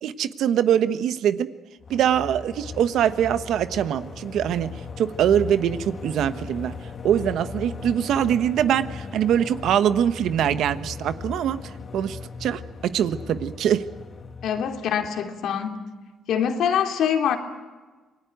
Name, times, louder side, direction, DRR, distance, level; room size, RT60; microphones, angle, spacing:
voice 1, 0.0-1.5 1.9-6.7 7.0-11.6 11.9-13.9, right 9 dB, 75° right, 1.1 m, -23 dB
sound 1, 1.8-14.9, left 5 dB, 45° left, 2.1 m, -38 dB
voice 2, 14.4-15.8 16.3-17.4, left 8 dB, 75° left, 2.8 m, -24 dB
27.5 x 19.5 x 9.3 m
cardioid pair, 90°, 0 cm